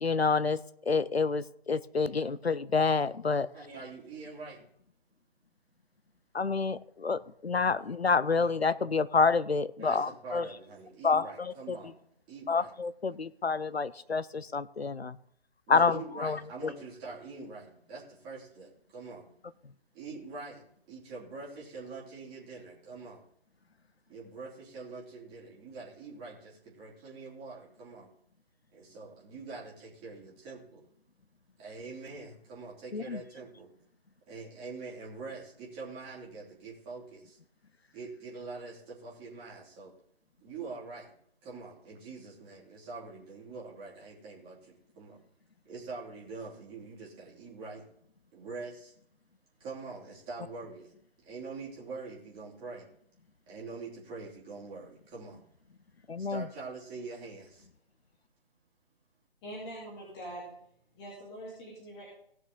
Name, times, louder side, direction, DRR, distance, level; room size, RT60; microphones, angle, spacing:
voice 1, 0.0-3.5 6.3-10.5 11.0-11.8 12.5-15.2 15.7-16.7 32.9-33.2 56.1-56.4, left 4 dB, 90° left, 17 dB, 0.7 m, -28 dB
voice 2, 3.5-4.6 9.8-11.9 12.3-12.7 15.7-19.3 19.9-23.2 24.1-28.1 28.7-30.8 31.6-33.7 34.3-37.4 37.9-39.9 40.4-41.1 41.4-45.2 45.6-47.8 48.3-48.9 49.6-50.9 51.2-52.8 53.5-55.4 56.2-57.7, right 4 dB, 15° right, -4 dB, 3.0 m, -44 dB
voice 3, 59.4-60.5 60.9-62.1, right 1 dB, 25° left, -6 dB, 3.2 m, -43 dB
17.5 x 6.3 x 3.8 m, 0.69 s
figure-of-eight pair, 140°, 31 cm